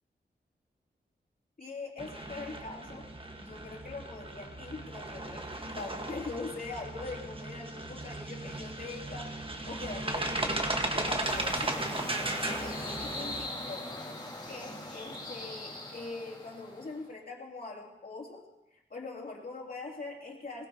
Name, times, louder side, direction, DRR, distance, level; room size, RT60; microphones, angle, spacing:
voice 1, 1.6-3.1 3.4-14.2 14.5-20.7, left 3 dB, 55° left, -2 dB, 2.9 m, -43 dB
sound 1, 2.0-13.5, right 2 dB, 30° right, 1.4 m, -36 dB
sound 2, 11.2-17.1, left 1 dB, 25° left, 3.3 m, -41 dB
21.0 x 16.5 x 2.9 m, 0.95 s
wide cardioid pair, 90°, 18 cm